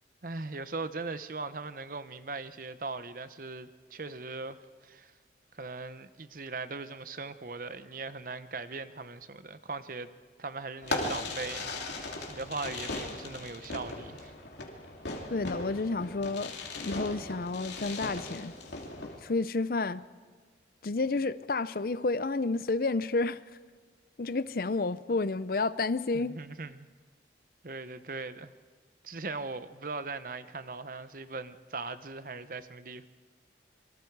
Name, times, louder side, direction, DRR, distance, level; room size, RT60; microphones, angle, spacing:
voice 1, 0.2-5.1 5.5-10.1 10.4-14.3 26.1-26.9 27.6-28.5 29.0-33.1, right 3 dB, 50° right, 0.9 m, -39 dB
Fireworks, 10.8-19.2, left 2 dB, 80° left, 2.8 m, -38 dB
voice 2, 15.3-18.5 19.2-20.1 20.8-23.4 24.2-26.3, left 3 dB, 55° left, 0.6 m, -30 dB
27.5 x 24.0 x 4.7 m
head